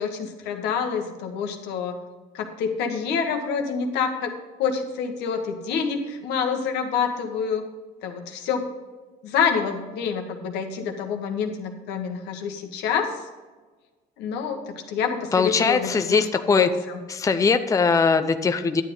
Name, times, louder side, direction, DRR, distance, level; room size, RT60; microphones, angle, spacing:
voice 1, 0.0-2.0 2.3-4.3 4.6-7.6 8.0-8.7 9.2-13.1 14.2-16.3 16.5-17.0, left 6 dB, 85° left, 4 dB, 1.5 m, -27 dB
voice 2, 15.3-16.7 17.1-18.8, left 5 dB, 20° left, 8 dB, 0.6 m, -21 dB
11.0 x 8.1 x 3.9 m, 1.3 s
cardioid pair, 110°, 17 cm